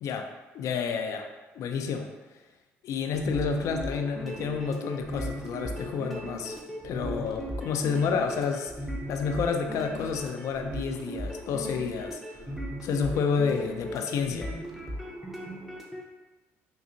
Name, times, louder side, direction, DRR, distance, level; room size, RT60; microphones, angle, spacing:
voice 1, 0.5-1.3 1.6-2.1 2.8-6.6 6.8-8.7 9.1-12.4 12.8-14.5, left 6 dB, 65° left, 5 dB, 0.4 m, -30 dB
sound 1, 3.1-16.0, right 1 dB, 5° right, 0.7 m, -37 dB
3.7 x 2.4 x 2.7 m, 1.2 s
supercardioid pair, 75°, 6 cm